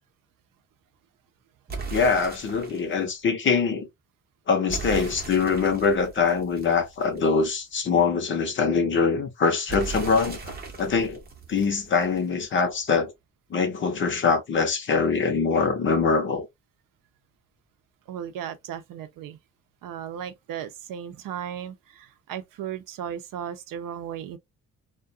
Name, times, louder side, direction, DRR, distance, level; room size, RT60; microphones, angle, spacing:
sound 1, 1.7-2.9 4.7-7.4 9.7-12.4, right 4 dB, 30° right, 0.7 m, -38 dB
voice 1, 1.9-3.9 4.5-11.2 11.5-13.1 13.5-16.5, left 5 dB, 35° left, 0.6 m, -23 dB
voice 2, 18.1-19.4 19.8-24.4, right 9 dB, 80° right, 0.6 m, -36 dB
2.3 x 2.2 x 2.6 m
cardioid pair, 150°, 32 cm